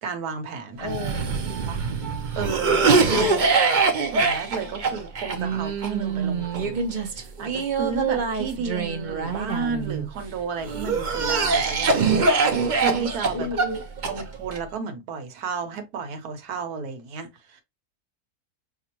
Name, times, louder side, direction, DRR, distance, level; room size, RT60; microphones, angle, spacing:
voice 1, 0.0-1.0 1.7-1.8 2.4-2.9 4.1-6.8 7.1-13.5 14.1-17.6, right 5 dB, 80° right, 1.4 m, -32 dB
voice 2, 0.8-1.3 2.8-3.5 13.3-13.8, left 2 dB, 25° left, 0.6 m, -32 dB
Cough, 0.8-10.1 10.6-14.6, right 4 dB, 50° right, 0.6 m, -24 dB
5.9 x 2.4 x 2.8 m
omnidirectional pair, 1.6 m